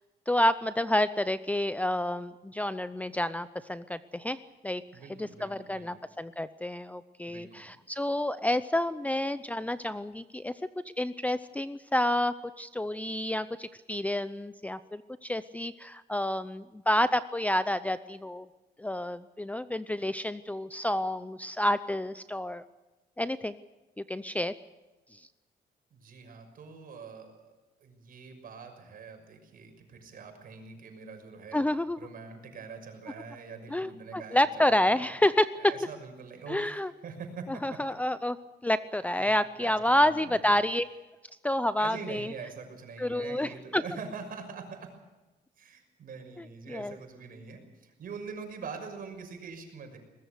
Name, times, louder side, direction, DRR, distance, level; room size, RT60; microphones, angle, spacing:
voice 1, 0.3-4.8 5.2-10.5 11.0-18.5 18.8-22.6 23.2-23.5 24.1-24.5 25.1-25.2 31.5-32.0 33.7-35.5 36.5-36.9 37.5-38.4 38.6-40.9 41.4-42.3 43.0-43.8 46.4-47.0, left 1 dB, 10° left, 13 dB, 0.6 m, -29 dB
voice 2, 4.9-6.0 7.3-7.7 25.9-27.5 27.8-31.6 32.0-35.0 35.6-36.7 37.0-37.8 39.2-39.3 39.6-40.4 41.8-44.9 45.6-50.0, right 5 dB, 55° right, 5 dB, 6.2 m, -44 dB
22.5 x 20.5 x 6.7 m, 1.1 s
cardioid pair, 130°, 17 cm